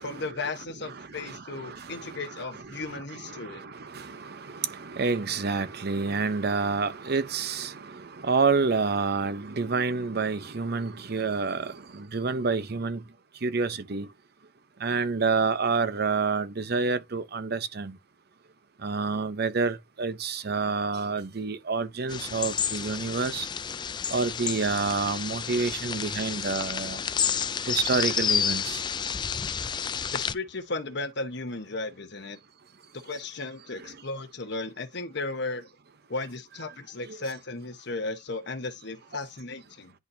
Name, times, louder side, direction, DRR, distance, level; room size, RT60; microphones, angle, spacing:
voice 1, 0.0-3.6 30.1-32.4 32.9-35.7 36.1-39.9, left 3 dB, 65° left, 1.2 m, -35 dB
voice 2, 0.9-13.0 13.4-14.1 14.8-18.0 18.8-23.5 24.1-27.0 27.7-28.8 33.8-33.9 37.1-37.2 39.1-39.2, right 4 dB, 55° right, 0.8 m, -29 dB
sound 1, 22.1-30.3, left 7 dB, 25° left, 0.3 m, -30 dB
10.5 x 4.1 x 2.7 m
head